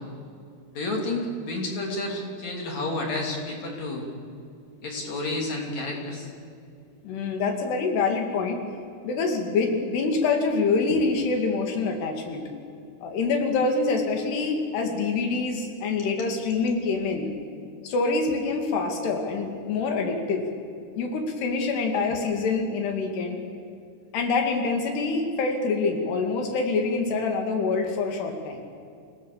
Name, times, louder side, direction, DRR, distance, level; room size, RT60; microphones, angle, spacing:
voice 1, 0.7-4.1 4.8-6.3 16.0-16.1, left 2 dB, 45° left, 0 dB, 4.3 m, -30 dB
voice 2, 7.0-8.6 9.0-12.4 13.0-17.3 17.8-20.4 21.0-23.4 24.1-28.6, left 4 dB, 85° left, 3 dB, 4.2 m, -26 dB
28.5 x 17.0 x 7.1 m, 2.5 s
omnidirectional pair, 4.6 m